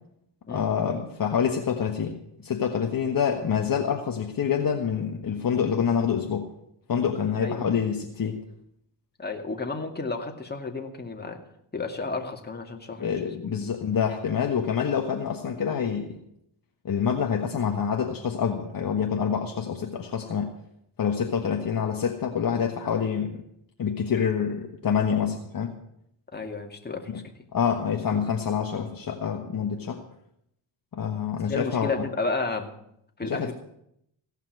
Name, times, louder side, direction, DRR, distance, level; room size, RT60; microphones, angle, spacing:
voice 1, 0.5-6.5 6.9-8.4 13.0-16.2 16.8-20.5 21.0-23.4 23.8-25.7 27.1-27.2 27.5-30.0 30.9-31.9 33.2-33.5, left 7 dB, 45° left, 3 dB, 1.5 m, -27 dB
voice 2, 9.2-11.4 11.7-13.3 26.3-27.1 31.5-32.7 33.2-33.5, left 3 dB, 20° left, 3 dB, 2.3 m, -32 dB
17.0 x 5.8 x 9.4 m, 0.75 s
supercardioid pair, 70°, 49 cm